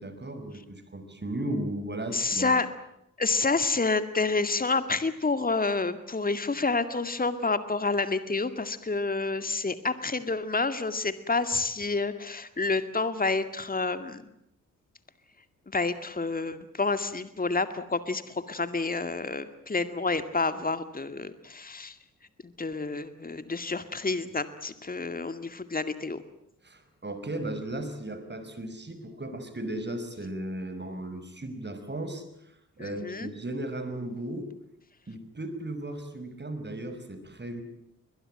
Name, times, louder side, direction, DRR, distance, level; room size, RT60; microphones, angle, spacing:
voice 1, 0.0-2.5 26.6-34.5 35.1-37.6, right 1 dB, 30° right, 9 dB, 5.9 m, -36 dB
voice 2, 2.1-2.7 3.2-14.2 15.7-22.0 22.4-26.2 32.8-33.3, left 3 dB, 25° left, 11 dB, 2.1 m, -29 dB
22.0 x 21.5 x 9.0 m, 0.81 s
hypercardioid pair, 45°, 37 cm